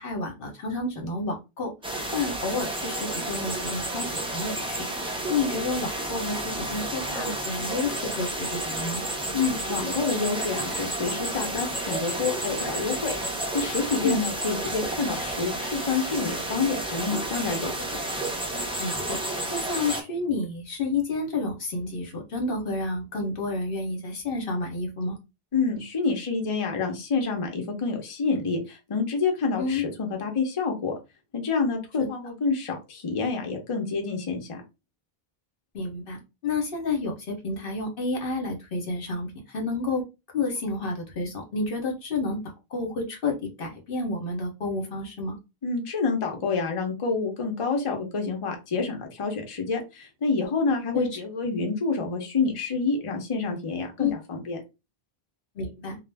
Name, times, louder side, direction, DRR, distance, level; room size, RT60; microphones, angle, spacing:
voice 1, 0.0-1.7 2.1-4.9 5.3-9.0 14.0-14.2 18.8-19.2 19.5-25.2 29.6-29.8 35.7-40.0 40.3-42.4 42.7-45.4 50.9-51.1 54.0-54.1 55.6-56.0, left 3 dB, 65° left, 2 dB, 1.0 m, -30 dB
sound 1, 1.8-20.0, right 1 dB, 10° right, 0.4 m, -31 dB
voice 2, 9.3-13.1 13.5-17.7 25.5-30.9 31.3-34.6 45.6-54.6, left 4 dB, 35° left, 3 dB, 0.6 m, -28 dB
2.4 x 2.0 x 3.2 m, 0.26 s
omnidirectional pair, 1.0 m